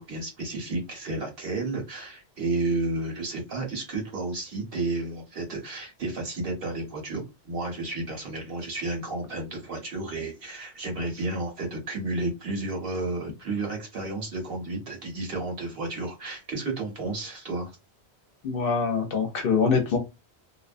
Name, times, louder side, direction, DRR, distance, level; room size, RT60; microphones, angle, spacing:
voice 1, 0.0-17.7, right 2 dB, 60° right, 1.2 m, -32 dB
voice 2, 18.4-20.0, left 5 dB, 60° left, 0.7 m, -24 dB
2.6 x 2.2 x 2.4 m
omnidirectional pair, 1.1 m